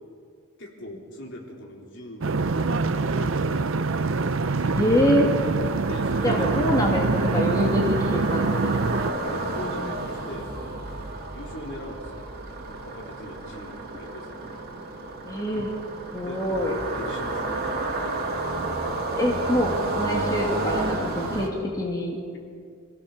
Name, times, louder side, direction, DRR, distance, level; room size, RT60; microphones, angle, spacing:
voice 1, 0.6-3.7 4.2-4.9 5.8-6.5 9.2-10.8 11.3-12.3 12.7-14.6 16.2-16.4 16.9-18.1, left 1 dB, 55° left, -1 dB, 3.7 m, -41 dB
sound 1, 2.2-9.1, right 3 dB, 65° right, 0.7 m, -25 dB
sound 2, 2.3-21.5, right 2 dB, 45° right, 2.7 m, -32 dB
voice 2, 4.7-5.3 6.2-9.3 15.3-15.7 16.1-16.7 19.2-22.2, equal, 15° left, -2 dB, 2.1 m, -25 dB
27.0 x 16.0 x 7.2 m, 2.2 s
head